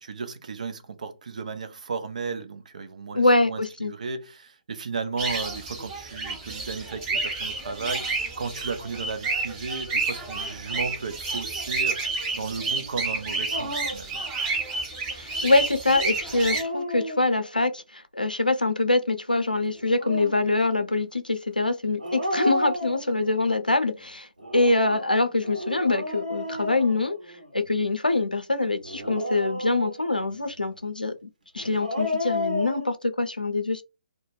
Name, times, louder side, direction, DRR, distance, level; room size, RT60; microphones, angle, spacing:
voice 1, 0.0-14.3, right 4 dB, 55° right, 0.5 m, -34 dB
voice 2, 3.1-3.9 15.1-24.3 24.5-27.2 27.5-31.3 31.5-33.8, left 2 dB, 90° left, 0.5 m, -24 dB
sound 1, 5.2-16.6, right 3 dB, 20° right, 0.8 m, -30 dB
Dog, 13.5-14.1 16.2-17.6 19.7-20.5 22.0-23.5 24.4-27.6 28.8-30.2 31.6-32.9, left 1 dB, 70° right, 1.0 m, -32 dB
2.2 x 2.1 x 3.2 m
figure-of-eight pair, 130°, 5 cm